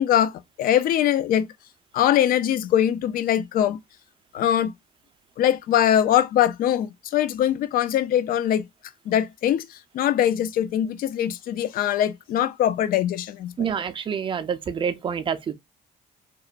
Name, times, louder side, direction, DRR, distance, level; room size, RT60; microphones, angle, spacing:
voice 1, 0.0-1.5 1.9-3.8 4.3-4.7 5.4-8.7 9.1-13.7, left 11 dB, 60° left, 0.4 m, -22 dB
voice 2, 13.6-15.5, right 7 dB, 30° right, 0.4 m, -27 dB
2.9 x 2.1 x 2.3 m
cardioid pair, 110°, 17 cm